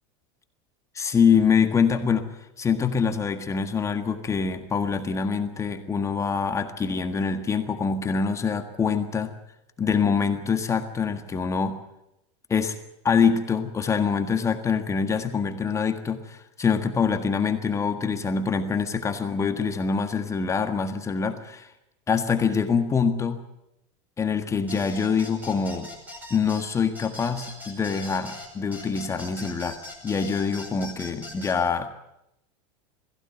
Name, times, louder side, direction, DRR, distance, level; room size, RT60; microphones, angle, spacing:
voice 1, 0.9-2.3 2.6-9.3 9.8-11.8 12.5-12.8 13.0-21.7 22.1-23.4 24.2-25.9 26.3-31.9, left 6 dB, 20° left, 7 dB, 1.6 m, -25 dB
sound 1, 24.7-31.6, left 2 dB, 10° right, 5.3 m, -41 dB
21.5 x 15.5 x 9.5 m, 0.84 s
supercardioid pair, 135°, 16 cm